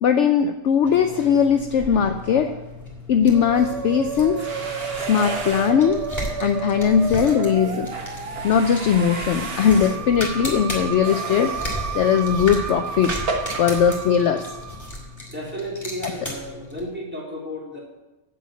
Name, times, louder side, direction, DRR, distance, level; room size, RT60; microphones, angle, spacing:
voice 1, 0.0-2.5 3.1-4.4 5.1-6.0 6.4-7.9 8.4-11.5 11.9-13.1 13.6-14.5 16.0-16.1, left 7 dB, 65° left, 7 dB, 0.8 m, -19 dB
sound 1, 0.8-16.9, left 1 dB, 10° left, 2.6 m, -35 dB
Musical instrument, 3.3-15.1, right 6 dB, 65° right, 0.3 m, -32 dB
sound 2, 4.1-14.7, right 3 dB, 45° right, 1.3 m, -35 dB
voice 2, 15.3-17.8, equal, 5° right, -4 dB, 2.8 m, -33 dB
7.6 x 7.3 x 8.3 m, 1.1 s
omnidirectional pair, 1.5 m